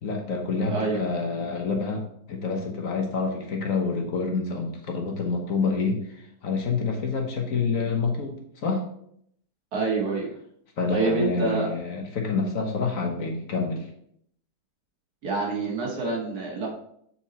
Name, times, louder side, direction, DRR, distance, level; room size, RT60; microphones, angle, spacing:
voice 1, 0.0-2.0 2.3-8.8 10.8-13.9, left 4 dB, 55° left, 2 dB, 1.3 m, -27 dB
voice 2, 0.7-1.0 9.7-10.3 10.9-11.7 15.2-16.7, right 3 dB, 65° right, -2 dB, 2.3 m, -26 dB
7.2 x 4.3 x 4.3 m, 0.70 s
omnidirectional pair, 1.8 m